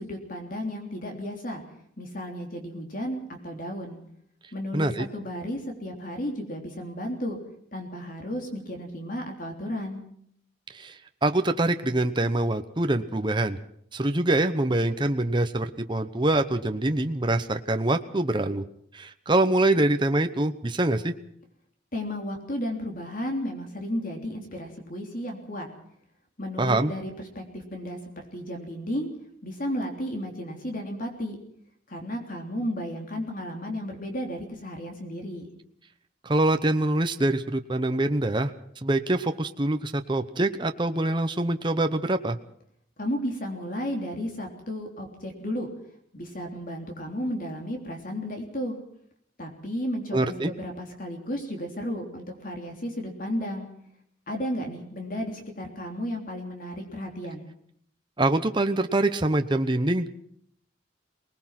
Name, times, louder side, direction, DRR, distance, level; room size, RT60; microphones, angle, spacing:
voice 1, 0.0-1.6 2.0-4.0 4.5-7.4 7.7-10.0 21.9-25.7 26.4-29.1 29.4-31.4 31.9-35.5 43.0-45.7 46.1-48.8 49.4-53.7 54.3-57.5, equal, 45° left, 2 dB, 3.4 m, -33 dB
voice 2, 4.7-5.1 10.7-10.9 11.2-13.6 13.9-18.6 18.9-21.1 26.6-26.9 36.2-38.5 38.8-42.4 50.1-50.5 58.2-60.1, right 2 dB, 25° right, 7 dB, 0.9 m, -24 dB
24.0 x 19.5 x 5.9 m, 0.68 s
head